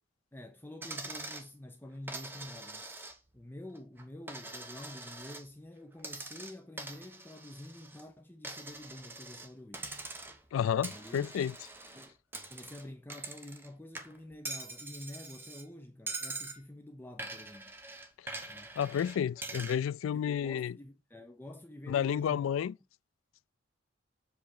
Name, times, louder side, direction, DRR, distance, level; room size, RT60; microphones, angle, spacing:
voice 1, 0.3-2.9 3.3-9.9 10.9-11.3 11.9-12.2 12.5-17.7 18.5-18.8 20.1-22.7, left 1 dB, 10° left, 0.6 m, -48 dB
Coin (dropping), 0.8-1.5 2.1-3.4 3.7-5.5 6.0-8.0 8.4-9.5 9.7-10.5 10.8-13.7 13.9-15.6 16.1-16.6 17.2-19.8, right 2 dB, 10° right, 1.1 m, -43 dB
voice 2, 10.5-11.5 18.2-18.5 18.8-20.7 21.9-22.7, left 8 dB, 85° left, 0.3 m, -31 dB
7.6 x 3.4 x 4.8 m
head